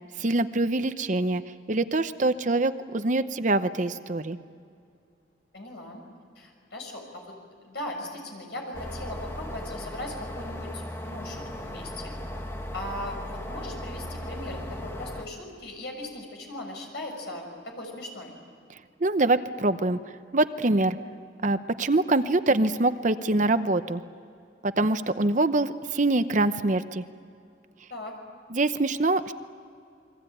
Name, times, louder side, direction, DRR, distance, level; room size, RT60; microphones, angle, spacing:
voice 1, 0.2-1.4 1.7-4.4 19.0-20.0 20.3-21.0 21.4-24.0 24.6-27.0 28.5-29.3, right 2 dB, 45° right, 11 dB, 0.8 m, -24 dB
voice 2, 5.5-6.0 6.3-7.3 7.6-12.1 12.7-18.3 27.9-28.1, left 1 dB, 65° left, 2 dB, 6.7 m, -38 dB
sound 1, 8.7-15.2, left 1 dB, 15° left, 1.6 m, -37 dB
29.0 x 22.5 x 9.2 m, 2.3 s
head